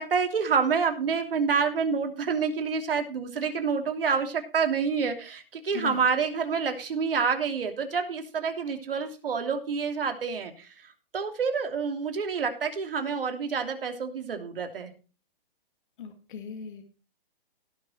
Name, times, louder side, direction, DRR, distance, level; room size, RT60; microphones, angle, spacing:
voice 1, 0.0-14.9, right 5 dB, 70° right, 5 dB, 3.0 m, -28 dB
voice 2, 16.0-16.8, left 6 dB, 60° left, 5 dB, 2.1 m, -38 dB
17.0 x 6.5 x 4.4 m, 0.35 s
hypercardioid pair, 150°, 29 cm